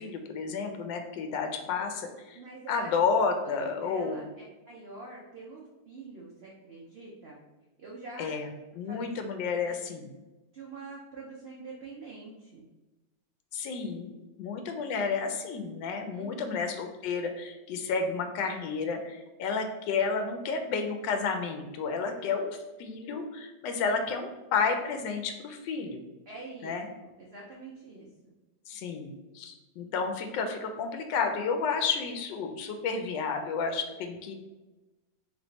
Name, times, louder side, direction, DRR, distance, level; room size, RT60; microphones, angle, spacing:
voice 1, 0.0-2.4 2.7-4.3 8.2-8.5 8.7-10.1 13.5-26.0 26.6-26.9 28.7-34.3, left 5 dB, 85° left, 6 dB, 1.3 m, -31 dB
voice 2, 2.3-2.9 3.4-7.4 7.8-8.5 8.9-9.1 9.7-9.8 10.5-12.6 16.1-16.7 23.8-24.0 26.3-28.3, right 3 dB, 70° right, -3 dB, 0.6 m, -46 dB
3.5 x 3.0 x 3.9 m, 1.1 s
omnidirectional pair, 1.9 m